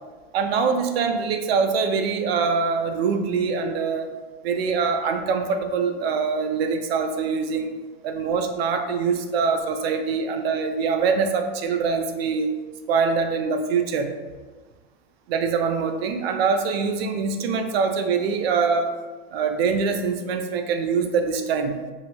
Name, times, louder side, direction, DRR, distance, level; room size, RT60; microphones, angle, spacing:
voice 1, 0.3-4.1 4.4-7.7 8.0-12.5 12.9-14.1 15.3-18.9 19.3-21.8, right 5 dB, 70° right, 6 dB, 0.5 m, -24 dB
2.9 x 2.8 x 2.2 m, 1.3 s
supercardioid pair, 155°, 32 cm